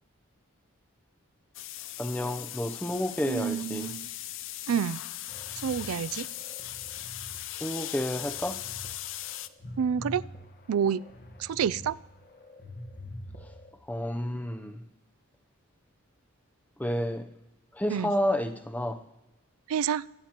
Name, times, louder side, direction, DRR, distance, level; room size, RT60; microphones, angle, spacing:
sound 1, 1.5-9.5, left 14 dB, 60° left, 0.5 m, -39 dB
voice 1, 2.0-3.9 7.5-8.6 13.8-14.8 16.8-17.3 17.7-19.0, equal, 5° left, 0.6 m, -30 dB
voice 2, 3.2-4.1 4.7-5.0 5.6-6.3 9.8-10.2 10.7-11.0 11.4-12.0 17.9-18.1 19.7-20.0, right 7 dB, 85° right, 0.4 m, -28 dB
sound 2, 5.3-7.4 7.8-8.9 9.3-11.9 12.2-13.7, left 1 dB, 45° left, 1.2 m, -45 dB
24.0 x 8.8 x 2.9 m
head